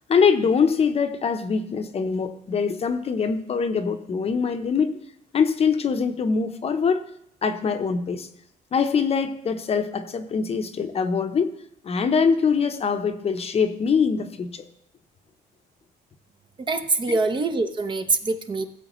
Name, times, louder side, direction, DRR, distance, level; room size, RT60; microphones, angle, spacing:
voice 1, 0.1-4.9 5.3-7.0 7.4-8.3 8.7-11.5 11.8-14.6 17.1-17.2, left 5 dB, 35° left, 8 dB, 0.8 m, -23 dB
voice 2, 16.7-18.6, right 3 dB, 30° right, 8 dB, 0.7 m, -24 dB
16.0 x 7.3 x 3.1 m, 0.73 s
cardioid pair, 110°, 17 cm